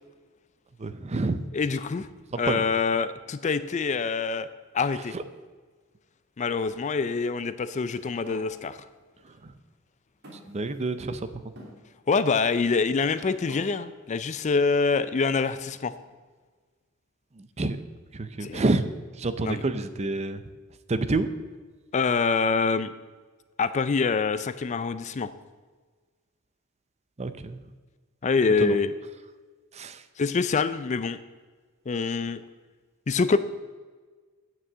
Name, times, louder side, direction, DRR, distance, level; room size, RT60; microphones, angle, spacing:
voice 1, 0.8-1.4 2.3-2.6 5.1-5.2 9.2-9.5 10.5-11.4 17.4-17.8 18.1-18.9 19.2-20.4 20.9-21.3 27.2-27.6 28.6-28.8 29.7-30.0, right 2 dB, 30° right, 12 dB, 0.5 m, -28 dB
voice 2, 1.5-2.1 2.4-4.5 4.7-5.2 6.4-8.8 12.1-15.9 18.4-18.6 19.4-19.6 21.9-22.9 23.6-25.3 28.2-28.9 30.2-31.2 31.9-32.4 33.1-33.4, left 4 dB, 35° left, 13 dB, 0.4 m, -25 dB
sound 1, 7.6-8.5 9.3-9.4 10.2-11.1 11.6-11.8 12.6-13.7, equal, 50° right, 3.0 m, -48 dB
9.6 x 6.2 x 7.4 m, 1.4 s
head